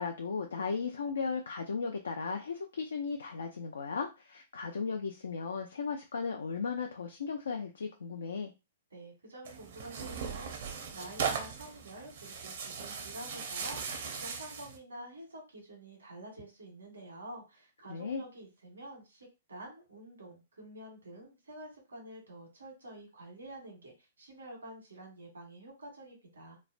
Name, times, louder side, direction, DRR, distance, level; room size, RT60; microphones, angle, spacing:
voice 1, 0.0-8.5 17.9-18.2, left 5 dB, 80° left, 3 dB, 0.4 m, -36 dB
voice 2, 8.9-26.6, right 1 dB, 90° right, 0 dB, 1.4 m, -48 dB
Tearing, 9.4-14.8, right 6 dB, 65° right, 0.6 m, -38 dB
3.1 x 2.1 x 2.5 m, 0.27 s
hypercardioid pair, 120°, 0 cm